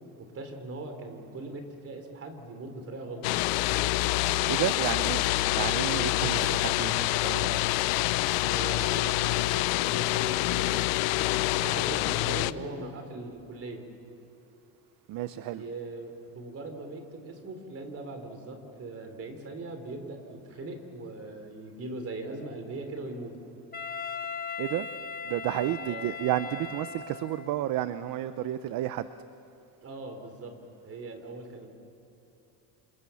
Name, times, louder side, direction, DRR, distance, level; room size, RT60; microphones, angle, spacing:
voice 1, 0.2-3.3 8.4-13.8 15.5-23.4 25.8-26.2 29.8-30.6 30.9-31.7, right 2 dB, 30° right, 3.7 m, -40 dB
sound 1, 3.2-12.5, left 18 dB, 75° left, 0.8 m, -26 dB
voice 2, 4.5-5.2 5.5-7.6 15.1-15.6 24.6-24.9 25.3-29.1, right 13 dB, 45° right, 0.8 m, -31 dB
Wind instrument woodwind instrument, 23.7-27.6, left 5 dB, 20° left, 1.2 m, -38 dB
28.0 x 28.0 x 7.1 m
cardioid pair, 150°, 45 cm